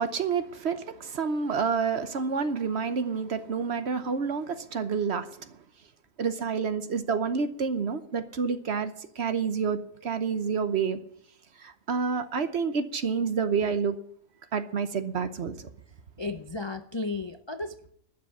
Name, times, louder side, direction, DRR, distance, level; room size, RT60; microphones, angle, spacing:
voice 1, 0.0-5.5 6.2-11.0 11.6-14.0 14.5-15.7, right 5 dB, 55° right, 1.1 m, -29 dB
voice 2, 16.2-17.9, left 3 dB, 40° left, 0.4 m, -34 dB
12.0 x 6.7 x 9.4 m
omnidirectional pair, 1.4 m